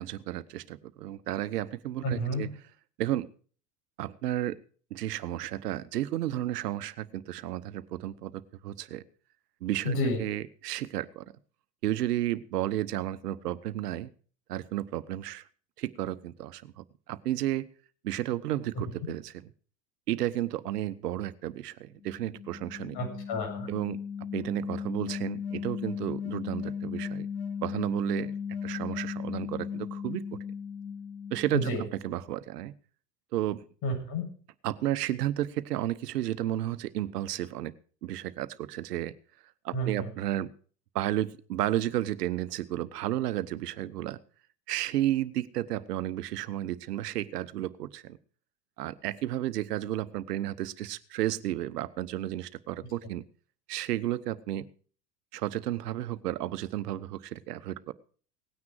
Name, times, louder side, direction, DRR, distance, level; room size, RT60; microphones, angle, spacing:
voice 1, 0.0-2.5 3.0-3.3 4.0-4.6 4.9-9.0 9.6-11.3 11.8-14.1 14.5-15.4 15.8-17.7 18.0-19.3 20.1-23.0 23.7-24.0 24.3-27.3 27.6-28.3 28.6-30.4 31.3-32.7 33.3-33.6 34.6-37.7 38.0-39.1 39.6-40.5 40.9-44.2 44.7-48.2 48.8-53.2 53.7-54.7 55.3-57.9, right 13 dB, 70° right, 16 dB, 1.1 m, -32 dB
voice 2, 2.0-2.4 9.8-10.2 22.9-23.7 31.5-31.8 33.8-34.3 39.7-40.1, equal, 50° left, 3 dB, 7.7 m, -30 dB
sound 1, 22.0-32.1, left 7 dB, 70° left, 5.2 m, -37 dB
18.0 x 9.5 x 4.7 m, 0.42 s
hypercardioid pair, 85°, 48 cm